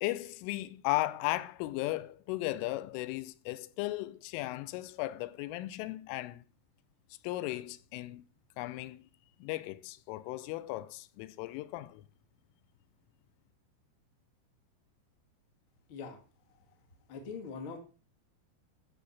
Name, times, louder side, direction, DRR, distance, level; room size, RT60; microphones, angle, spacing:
voice 1, 0.0-6.4 7.2-8.2 8.6-9.1 9.4-12.0, left 17 dB, 85° left, 3.1 m, -36 dB
voice 2, 17.1-17.8, left 5 dB, 55° left, 1.3 m, -42 dB
13.5 x 4.7 x 7.1 m
omnidirectional pair, 5.6 m